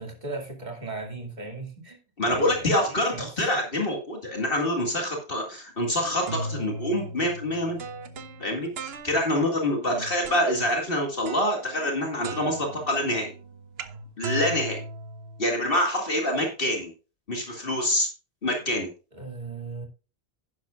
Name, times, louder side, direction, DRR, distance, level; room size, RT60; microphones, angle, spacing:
voice 1, 0.0-2.0 2.2-3.3 9.8-10.1 19.1-19.9, right 3 dB, 40° right, 2.7 m, -37 dB
voice 2, 2.2-7.8 8.4-13.3 14.2-14.8 15.4-16.9 17.3-18.1 18.4-18.9, left 1 dB, 55° left, 2.2 m, -26 dB
sound 1, 6.0-9.5 10.2-10.7 11.3-12.0 12.2-15.7, right 2 dB, 65° right, 1.1 m, -38 dB
11.0 x 10.5 x 2.4 m
omnidirectional pair, 1.1 m